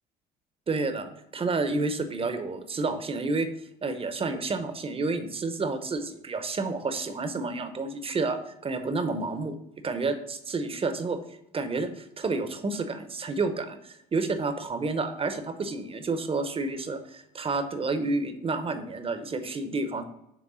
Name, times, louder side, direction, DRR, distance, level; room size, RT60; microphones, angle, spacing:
voice 1, 0.7-3.5 3.8-9.6 9.8-11.2 11.5-20.0, right 3 dB, 30° right, 8 dB, 0.9 m, -30 dB
6.2 x 3.5 x 5.5 m, 0.79 s
supercardioid pair, 75°, 19 cm